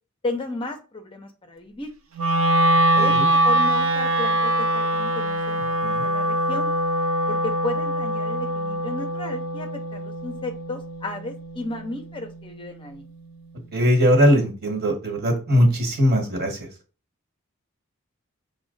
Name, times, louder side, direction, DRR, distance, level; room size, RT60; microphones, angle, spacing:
voice 1, 0.2-1.9 2.9-6.7 7.3-13.0, left 2 dB, 25° left, 6 dB, 0.6 m, -33 dB
Wind instrument woodwind instrument, 2.2-12.3, right 1 dB, 70° right, 0.7 m, -23 dB
voice 2, 2.9-3.3 5.8-6.0 13.7-16.7, equal, 50° right, 3 dB, 1.4 m, -20 dB
5.9 x 2.1 x 3.8 m, 0.34 s
head